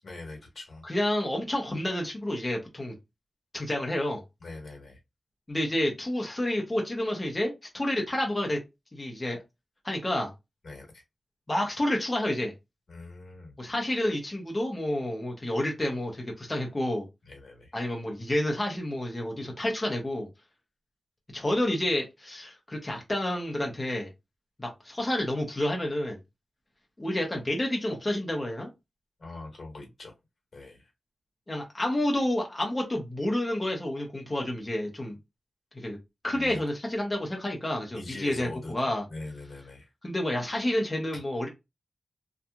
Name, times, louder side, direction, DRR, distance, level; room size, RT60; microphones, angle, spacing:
voice 1, 0.0-0.8 4.4-5.0 10.6-11.0 12.9-13.6 17.2-17.7 29.2-30.1 30.5-30.9 36.3-36.6 37.9-39.9 41.1-41.2, left 2 dB, 60° left, 1.3 m, -43 dB
voice 2, 0.8-2.9 3.5-4.2 5.5-8.6 8.9-9.4 9.8-10.3 11.5-12.5 13.6-17.1 17.7-20.3 21.3-24.1 24.6-26.2 27.0-28.7 31.5-35.2 35.7-36.0 36.2-39.0 40.0-41.5, left 1 dB, 25° left, 0.8 m, -29 dB
2.8 x 2.4 x 2.3 m
wide cardioid pair, 80°, 0 cm